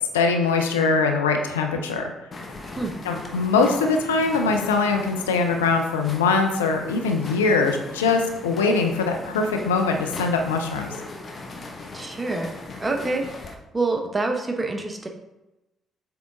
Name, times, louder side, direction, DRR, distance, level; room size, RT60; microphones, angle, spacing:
voice 1, 0.1-2.1 3.0-10.9, left 4 dB, 75° left, 4 dB, 0.6 m, -22 dB
sound 1, 2.3-13.5, left 2 dB, 40° left, 0.9 m, -39 dB
voice 2, 2.6-2.9 11.9-12.5 12.8-15.1, right 3 dB, 25° right, 3 dB, 1.0 m, -27 dB
7.7 x 3.5 x 3.8 m, 0.97 s
figure-of-eight pair, 45°, 0 cm